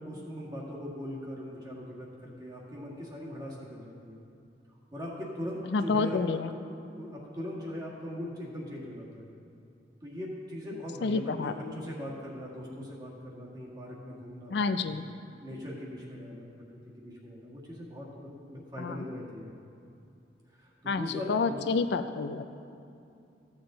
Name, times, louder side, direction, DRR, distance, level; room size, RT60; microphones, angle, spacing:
voice 1, 0.0-4.2 4.9-9.3 10.0-14.9 15.4-16.5 17.0-19.5 20.6-21.8, left 1 dB, 25° right, -4 dB, 1.8 m, -40 dB
voice 2, 5.7-6.5 11.0-11.5 14.5-15.1 18.8-19.0 20.9-22.5, left 4 dB, 70° left, 10 dB, 0.4 m, -29 dB
14.5 x 7.1 x 3.8 m, 2.6 s
head